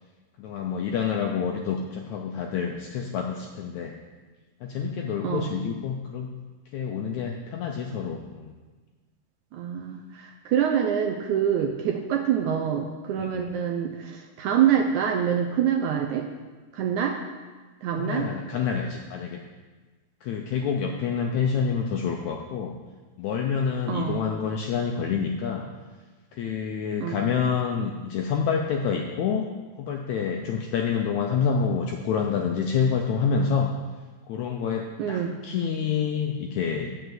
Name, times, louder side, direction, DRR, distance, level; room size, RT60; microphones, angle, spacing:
voice 1, 0.4-4.0 4.6-6.3 6.7-8.5 13.2-13.5 18.0-19.4 20.2-22.8 23.2-25.7 26.3-29.5 29.8-33.7 34.3-36.9, left 6 dB, 80° left, 2 dB, 1.7 m, -27 dB
voice 2, 9.5-16.3 16.7-17.2 17.8-18.3 23.9-24.2 27.0-27.3 35.0-35.4, right 8 dB, 75° right, 1 dB, 1.8 m, -26 dB
9.1 x 6.3 x 7.8 m, 1.3 s
omnidirectional pair, 4.0 m